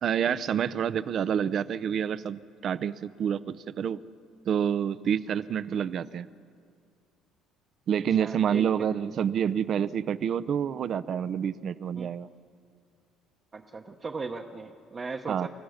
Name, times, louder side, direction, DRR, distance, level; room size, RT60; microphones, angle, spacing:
voice 1, 0.0-4.0 4.5-6.3 7.9-12.3 15.3-15.5, right 8 dB, 45° right, 14 dB, 0.6 m, -28 dB
voice 2, 8.2-8.8 12.0-12.1 13.5-15.5, right 4 dB, 25° right, 2 dB, 0.9 m, -38 dB
29.5 x 15.5 x 6.5 m, 2.3 s
cardioid pair, 140°, 0 cm